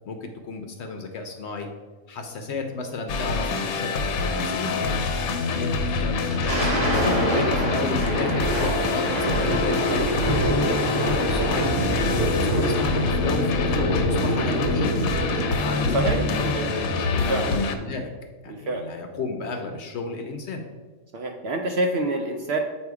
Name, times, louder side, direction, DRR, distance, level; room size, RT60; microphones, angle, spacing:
voice 1, 0.0-1.7 2.1-5.0 5.4-7.0 7.3-9.1 9.4-11.7 12.3-16.0 16.4-18.1 18.4-20.6, left 3 dB, 60° left, 4 dB, 0.8 m, -33 dB
sound 1, 3.1-17.8, left 4 dB, 90° left, 1.1 m, -26 dB
Thunder, 6.1-16.8, equal, 25° right, 2.1 m, -26 dB
voice 2, 15.9-16.7 17.1-17.5 18.5-18.9 21.1-22.6, right 1 dB, 65° right, 2 dB, 0.6 m, -27 dB
8.0 x 2.7 x 4.6 m, 1.3 s
omnidirectional pair, 1.5 m